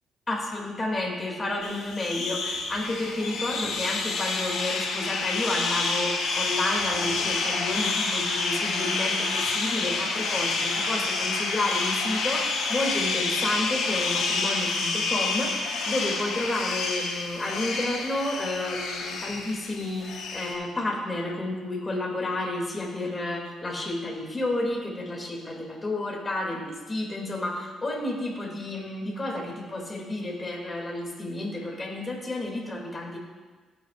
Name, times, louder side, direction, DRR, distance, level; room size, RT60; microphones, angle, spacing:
voice 1, 0.3-33.2, left 2 dB, 25° left, -1 dB, 2.8 m, -31 dB
sound 1, 1.6-20.5, left 3 dB, 80° left, 3.5 m, -28 dB
16.0 x 9.2 x 2.6 m, 1.4 s
cardioid pair, 90°, 0 cm